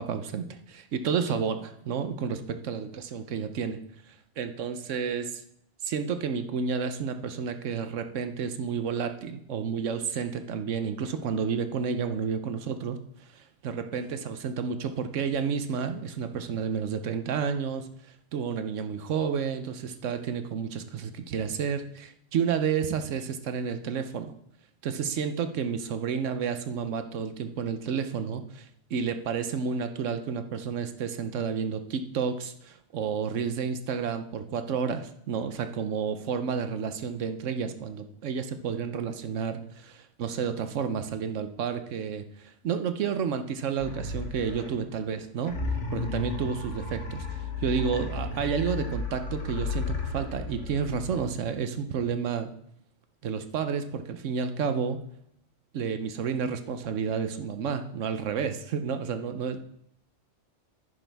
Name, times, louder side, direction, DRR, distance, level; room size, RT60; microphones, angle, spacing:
voice 1, 0.0-3.8 4.4-5.4 5.8-13.0 13.3-17.9 18.3-24.3 24.8-45.5 45.9-52.5 53.2-55.0 55.7-59.6, right 6 dB, 85° right, 9 dB, 1.1 m, -31 dB
sound 1, 43.8-44.9 45.4-51.4, left 3 dB, 75° left, 1.8 m, -33 dB
10.5 x 10.5 x 3.4 m, 0.72 s
omnidirectional pair, 1.2 m